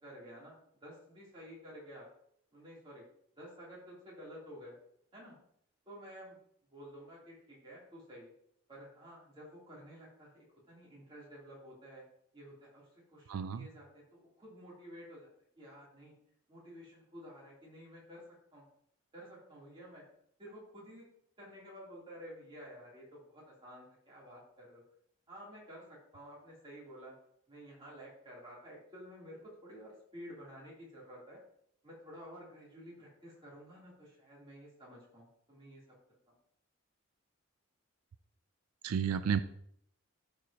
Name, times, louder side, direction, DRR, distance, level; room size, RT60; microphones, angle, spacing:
voice 1, 0.0-2.1 2.5-3.1 3.4-4.8 5.1-5.3 5.8-6.4 6.7-8.3 8.7-12.0 12.3-15.3 15.6-16.1 16.5-18.6 19.1-20.0 20.4-21.1 21.4-24.8 25.3-27.2 27.5-31.4 31.8-35.8, equal, 25° right, -6 dB, 3.0 m, -52 dB
voice 2, 13.3-13.7 38.8-39.4, right 7 dB, 85° right, 12 dB, 0.4 m, -32 dB
13.0 x 4.8 x 2.8 m, 0.68 s
head